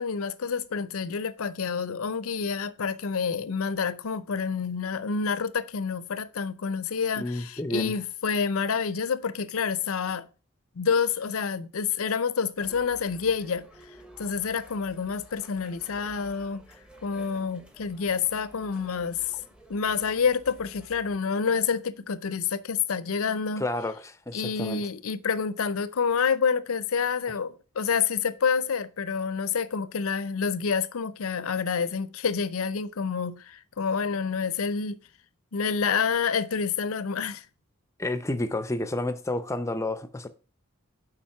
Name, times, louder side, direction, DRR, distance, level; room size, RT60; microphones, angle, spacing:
voice 1, 0.0-10.3 10.8-13.7 14.2-16.6 17.0-19.2 19.7-23.6 24.3-35.0 35.5-37.5, left 6 dB, 75° left, 0.6 m, -28 dB
voice 2, 7.2-7.9 23.6-24.8 38.0-40.3, left 1 dB, 15° left, 0.6 m, -30 dB
sound 1, 12.6-21.2, right 1 dB, 5° right, 0.9 m, -52 dB
7.3 x 5.0 x 5.7 m
head